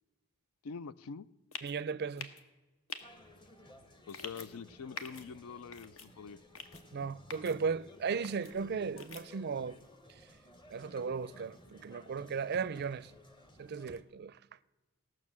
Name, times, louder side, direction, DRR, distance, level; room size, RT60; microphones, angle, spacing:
voice 1, 0.6-1.3 4.1-6.4, left 5 dB, 85° left, 0.4 m, -45 dB
sound 1, 1.5-1.7 2.2-2.4 2.9-3.0 4.1-4.5 5.0-5.2 5.7-6.1 6.5-6.8 7.3-7.5 8.2-8.5 9.0-9.2, left 5 dB, 70° left, 1.1 m, -44 dB
voice 2, 1.6-2.3 6.9-9.8 10.7-13.1 13.6-14.4, right 5 dB, 50° right, 0.4 m, -36 dB
sound 2, 3.0-14.0, left 1 dB, 20° left, 1.0 m, -56 dB
17.0 x 6.3 x 7.4 m
head